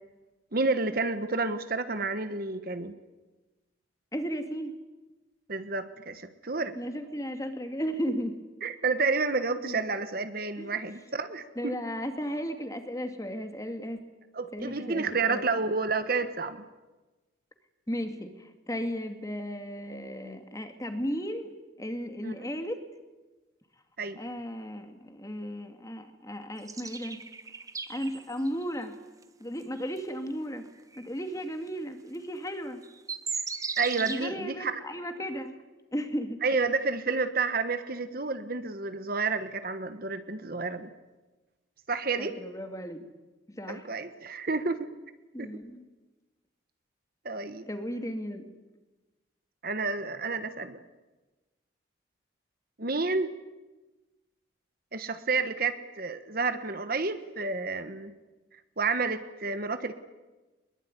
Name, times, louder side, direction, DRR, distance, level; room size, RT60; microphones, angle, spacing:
voice 1, 0.5-2.9 5.5-6.7 8.1-8.2 8.6-11.8 14.3-16.6 22.2-22.3 24.0-24.2 33.8-34.8 36.4-40.9 41.9-42.4 43.7-44.9 45.4-45.5 47.2-47.6 49.6-50.8 52.8-53.3 54.9-58.1 58.8-59.9, right 4 dB, 45° right, 10 dB, 1.3 m, -30 dB
voice 2, 4.1-4.8 6.8-8.4 9.6-9.8 10.6-10.8 11.6-14.0 14.5-15.4 17.9-21.5 21.8-22.8 24.2-27.2 27.9-29.0 29.4-30.7 31.0-32.8 34.0-35.6 35.9-36.4 42.2-43.1 43.5-43.9 45.3-45.9 47.7-48.4, equal, 15° left, 7 dB, 2.1 m, -35 dB
sound 1, 26.7-28.6 29.2-29.3 29.8-30.0 30.9-31.1 32.5-32.6 32.8-34.3, right 5 dB, 15° right, 1.1 m, -36 dB
22.5 x 21.5 x 9.8 m, 1.2 s
head